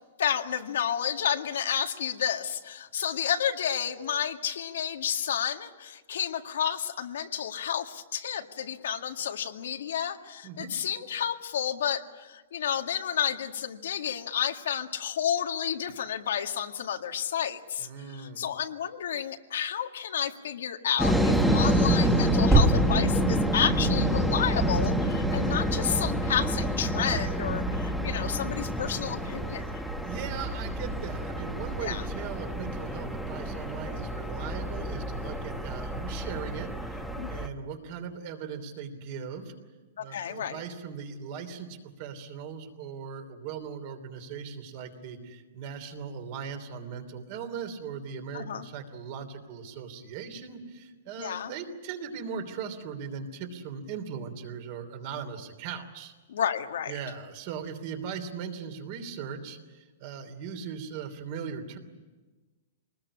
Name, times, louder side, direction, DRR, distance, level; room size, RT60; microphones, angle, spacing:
voice 1, 0.2-17.9 18.1-29.6 31.8-32.0 37.2-37.3 40.0-40.6 48.3-48.7 51.2-51.5 56.3-56.9, left 9 dB, 75° left, 5 dB, 1.9 m, -31 dB
voice 2, 10.4-10.8 17.8-18.4 30.0-39.5 40.0-56.1 56.9-61.8, right 6 dB, 40° right, 7 dB, 3.0 m, -39 dB
sound 1, 21.0-37.5, right 1 dB, ahead, 1.3 m, -27 dB
24.5 x 20.5 x 9.9 m, 1.2 s
hypercardioid pair, 170°, 0 cm